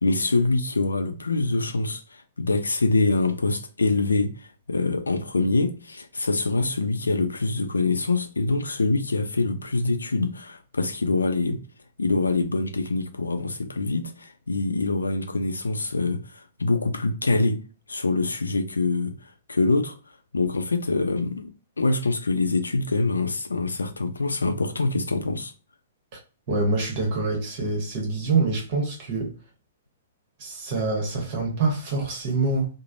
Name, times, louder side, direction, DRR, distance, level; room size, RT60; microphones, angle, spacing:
voice 1, 0.0-4.3 4.7-11.6 12.0-16.2 16.6-17.6 17.9-19.1 19.5-19.9 20.3-25.5, left 3 dB, 80° left, 0.4 m, -24 dB
voice 2, 26.5-29.3 30.4-32.7, right 3 dB, 45° right, 1.0 m, -25 dB
3.2 x 2.0 x 2.4 m
figure-of-eight pair, 115°, 0 cm